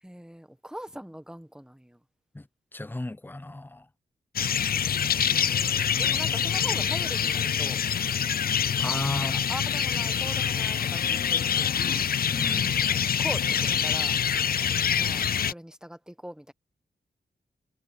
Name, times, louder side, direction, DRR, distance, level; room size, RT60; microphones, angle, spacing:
voice 1, 0.0-2.0 5.2-7.8 9.1-12.0 12.8-14.2 14.9-16.5, equal, 5° right, 1.2 m, -41 dB
voice 2, 2.7-3.9 8.8-9.4 12.3-12.8, left 2 dB, 10° left, 0.6 m, -34 dB
sound 1, 4.4-15.5, left 8 dB, 60° left, 0.5 m, -26 dB
wide cardioid pair, 100°, 18 cm